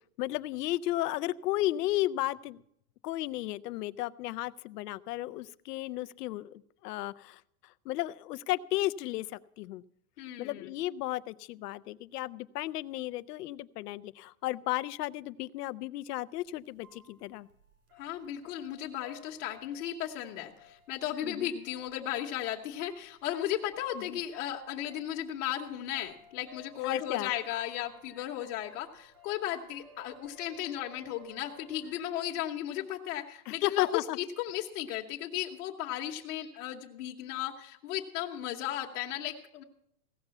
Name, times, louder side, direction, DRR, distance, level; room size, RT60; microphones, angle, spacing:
voice 1, 0.2-2.6 3.0-9.8 10.4-17.5 21.2-21.5 23.9-24.2 26.8-27.3 33.5-34.2, left 16 dB, 85° left, 17 dB, 0.7 m, -34 dB
voice 2, 10.2-10.7 18.0-39.6, left 12 dB, 55° left, -1 dB, 1.2 m, -35 dB
sound 1, 16.4-32.1, left 2 dB, 75° right, 3.7 m, -57 dB
16.0 x 6.7 x 8.1 m, 0.72 s
supercardioid pair, 175°, 46 cm